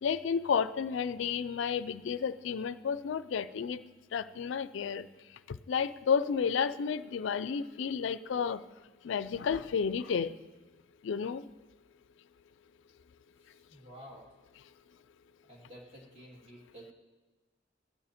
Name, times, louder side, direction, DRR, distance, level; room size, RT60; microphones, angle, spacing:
voice 1, 0.0-3.8 4.1-5.1 5.5-8.6 9.0-10.3 11.0-11.4, left 6 dB, 75° left, 15 dB, 0.4 m, -31 dB
voice 2, 13.4-14.3 15.4-16.9, equal, 30° right, -2 dB, 2.2 m, -51 dB
14.5 x 9.5 x 4.3 m, 1.3 s
head